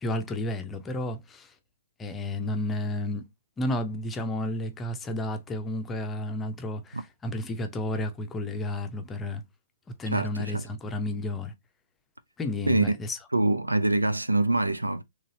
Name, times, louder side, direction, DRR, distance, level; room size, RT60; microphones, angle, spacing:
voice 1, 0.0-1.5 2.0-3.3 3.6-9.4 10.0-11.5 12.4-13.2, left 1 dB, 15° left, 0.6 m, -32 dB
voice 2, 10.1-10.6 12.7-12.9 13.3-15.0, right 2 dB, 80° right, 0.5 m, -24 dB
4.0 x 3.1 x 2.7 m
figure-of-eight pair, 120°, 0 cm